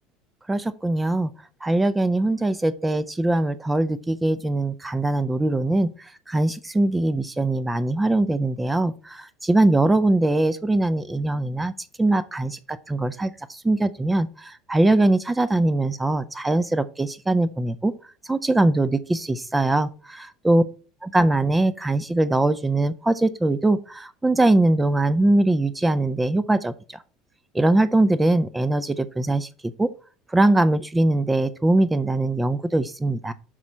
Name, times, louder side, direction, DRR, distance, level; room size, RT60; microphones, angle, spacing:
voice 1, 0.5-1.3 1.6-11.7 12.0-17.9 18.2-20.6 21.1-27.0 27.5-29.5 29.8-29.9 30.3-33.3, right 2 dB, 10° right, 14 dB, 0.3 m, -22 dB
6.0 x 5.3 x 4.4 m, 0.37 s
supercardioid pair, 135°, 0 cm